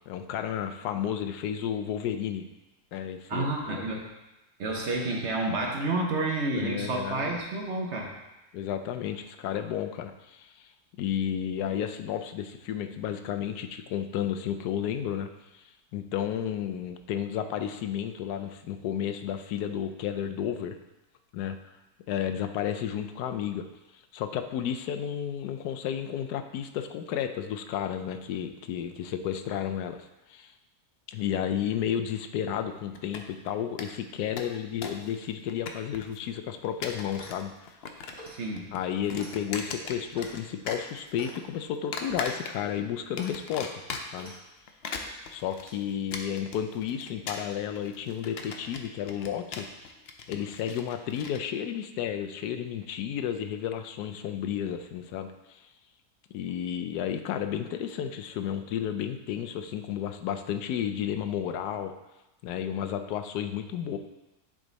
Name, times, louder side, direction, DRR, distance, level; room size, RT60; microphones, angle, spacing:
voice 1, 0.1-2.4 2.9-3.7 6.5-7.4 8.5-10.7 11.0-15.3 15.5-15.6 15.9-20.8 21.3-21.6 22.1-23.6 24.1-30.0 30.3-30.5 31.1-37.5 38.7-43.7 44.1-44.3 45.3-49.7 50.3-55.6 56.3-61.9 62.4-64.0, left 9 dB, 85° left, 8 dB, 1.1 m, -32 dB
voice 2, 3.3-4.1 4.6-8.1 38.3-38.7, right 2 dB, 50° right, 0 dB, 1.1 m, -30 dB
sound 1, 32.9-33.5 33.8-33.9 34.2-35.1 35.3-36.2 36.6-37.4 37.7-38.3 38.6-40.4 40.7-41.4 41.9-42.8 43.2-44.3 44.7-51.4, left 5 dB, 65° left, 0.6 m, -38 dB
Clock, 37.0-37.5 38.1-38.4 39.2-39.4 40.1-40.4 41.2-41.3 42.1-42.4 43.2-43.3 44.1-44.4, equal, 20° right, 2.2 m, -47 dB
9.7 x 3.8 x 4.0 m, 1.0 s
omnidirectional pair, 1.7 m